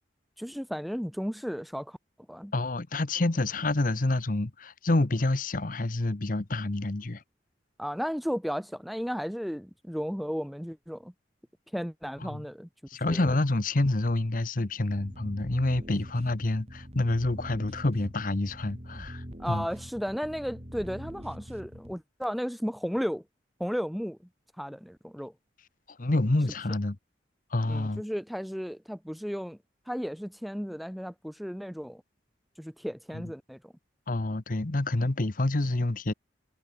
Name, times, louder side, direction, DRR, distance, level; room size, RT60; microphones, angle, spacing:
voice 1, 0.4-2.0 2.3-2.5 7.8-11.1 11.7-12.7 13.1-13.3 19.4-23.2 23.6-24.2 24.6-25.3 27.7-29.6 29.9-32.0 32.6-33.7, equal, ahead, 0.6 m, -34 dB
voice 2, 2.5-7.2 12.2-12.4 12.9-19.7 26.0-27.0 27.5-28.0 33.1-33.2 34.1-36.1, left 2 dB, 50° left, 1.0 m, -28 dB
sound 1, 14.9-21.9, equal, 40° right, 4.5 m, -44 dB
head